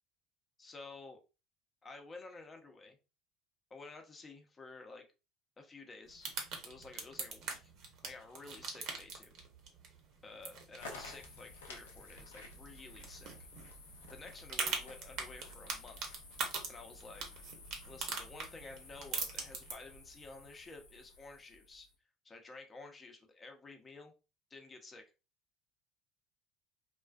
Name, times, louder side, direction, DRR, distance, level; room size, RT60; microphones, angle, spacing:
voice 1, 0.6-1.2 1.8-3.0 3.7-5.0 5.6-6.3 6.6-7.7 8.0-9.3 10.2-13.3 14.1-16.2 16.7-17.2 17.8-21.9 22.2-24.1 24.5-25.0, left 3 dB, 30° left, 4 dB, 0.6 m, -52 dB
sound 1, 6.1-19.7, right 5 dB, 60° right, 0.7 m, -43 dB
sound 2, 10.8-21.9, left 2 dB, 85° left, 0.5 m, -53 dB
2.4 x 2.3 x 2.3 m, 0.30 s
hypercardioid pair, 75°, 0 cm